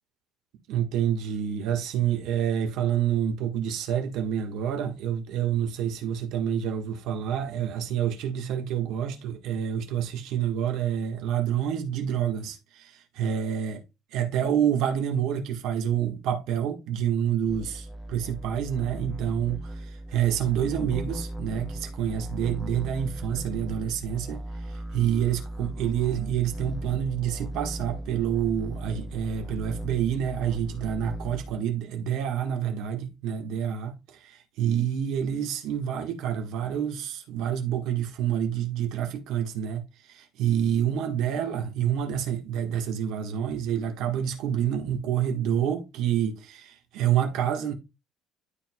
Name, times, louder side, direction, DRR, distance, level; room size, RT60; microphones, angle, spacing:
voice 1, 0.7-13.8 14.1-47.7, right 9 dB, 70° right, 1.6 m, -28 dB
sound 1, 17.5-31.6, right 1 dB, ahead, 0.7 m, -37 dB
12.0 x 4.6 x 2.3 m
cardioid pair, 165°, 0 cm